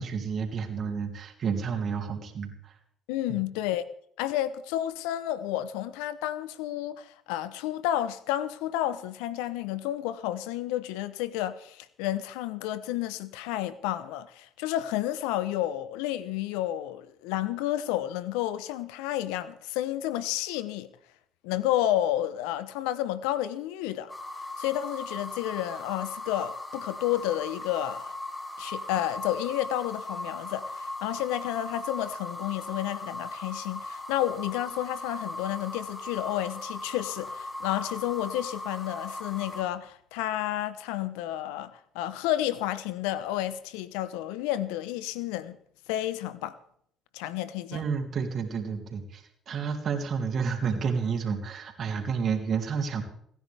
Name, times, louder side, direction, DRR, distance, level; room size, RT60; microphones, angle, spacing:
voice 1, 0.0-2.8 3.3-3.4 47.7-53.0, right 6 dB, 55° right, 3.1 m, -30 dB
voice 2, 3.1-3.8 4.2-20.9 21.4-24.1 24.6-28.1 28.6-45.6 45.9-46.6 47.1-47.8, left 13 dB, 80° left, 0.9 m, -31 dB
sound 1, 24.1-39.6, left 2 dB, 20° left, 3.7 m, -38 dB
29.5 x 10.5 x 3.5 m
hypercardioid pair, 55°, 0 cm